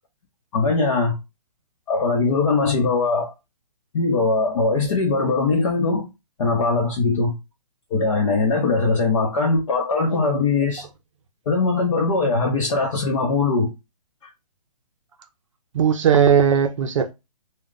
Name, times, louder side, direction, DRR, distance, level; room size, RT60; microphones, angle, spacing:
voice 1, 0.5-1.2 1.9-3.3 3.9-6.1 6.4-7.4 7.9-10.9 11.5-13.7 14.2-14.3, left 3 dB, 50° left, 0.8 m, -21 dB
voice 2, 15.7-17.1, right 7 dB, 50° right, 0.5 m, -17 dB
2.3 x 2.2 x 3.7 m
hypercardioid pair, 150°, 21 cm